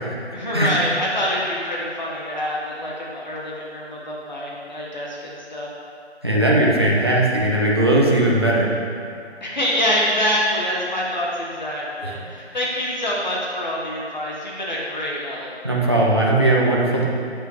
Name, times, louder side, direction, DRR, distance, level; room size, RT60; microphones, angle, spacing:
voice 1, 0.3-5.7 9.4-15.5, equal, 40° left, -5 dB, 1.4 m, -25 dB
voice 2, 6.2-8.7 15.6-17.0, right 1 dB, 20° right, -5 dB, 0.7 m, -18 dB
10.5 x 8.2 x 3.1 m, 2.4 s
figure-of-eight pair, 170°, 34 cm